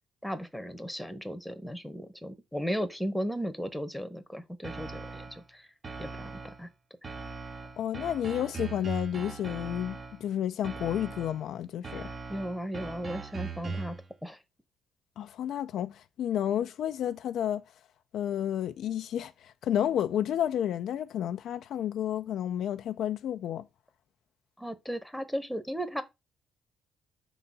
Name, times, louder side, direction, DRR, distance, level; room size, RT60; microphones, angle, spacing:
voice 1, 0.2-5.7 6.0-6.7 12.3-14.0 14.2-14.4 24.6-26.0, equal, ahead, 1.1 m, -35 dB
sound 1, 4.6-5.5 5.8-6.7 7.0-10.3 10.6-11.5 11.8-14.1, right 4 dB, 40° right, 1.1 m, -40 dB
voice 2, 7.8-12.1 15.2-17.6 18.1-23.6, left 10 dB, 75° left, 0.4 m, -31 dB
5.5 x 4.0 x 5.4 m
cardioid pair, 90°, 0 cm